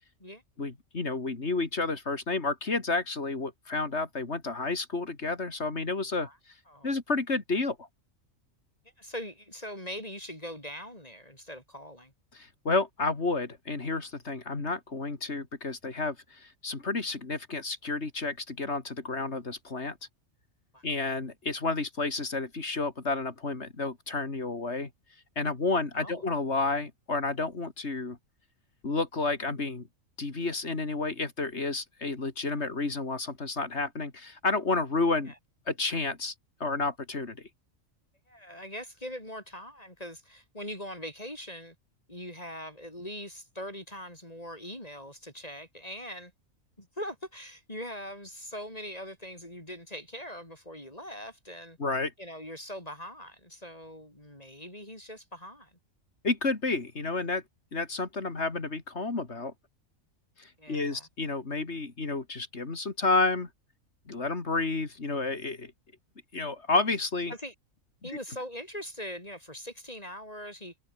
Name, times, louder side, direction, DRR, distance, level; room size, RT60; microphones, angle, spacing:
voice 1, 0.6-6.3 6.8-7.9 12.3-20.0 20.8-24.9 25.4-28.2 28.8-29.9 30.2-35.3 35.7-36.3 36.6-37.4 51.8-52.1 56.2-57.4 57.7-59.5 60.4-63.5 64.1-65.7 66.3-67.3, left 3 dB, 50° left, 3.0 m, -30 dB
voice 2, 9.0-12.1 20.7-20.8 26.0-26.2 32.5-32.7 35.3-35.4 38.3-41.8 42.1-46.3 46.8-51.8 52.2-55.7 60.6-61.1 67.3-67.5 68.0-70.8, equal, 25° left, 7.1 m, -41 dB
omnidirectional pair, 1.4 m